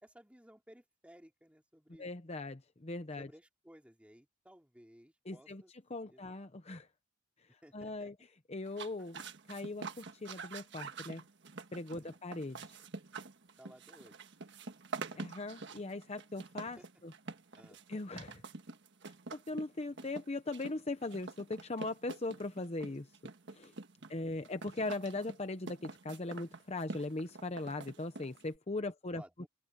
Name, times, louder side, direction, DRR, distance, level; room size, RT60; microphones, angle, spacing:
voice 1, 0.0-2.1 3.2-5.7 6.1-6.3 7.6-8.1 11.9-12.2 13.6-14.2 16.8-16.9 17.5-17.8 24.0-24.5 29.1-29.5, equal, 5° right, 2.9 m, -59 dB
voice 2, 2.0-3.3 5.3-5.6 5.9-6.9 7.7-8.1 8.5-9.2 9.5-11.2 11.7-12.8 15.1-17.1 17.9-18.4 19.3-23.1 23.5-23.7 24.1-29.2, left 2 dB, 30° left, 0.8 m, -39 dB
sound 1, 8.7-28.6, right 4 dB, 60° right, 1.5 m, -47 dB
head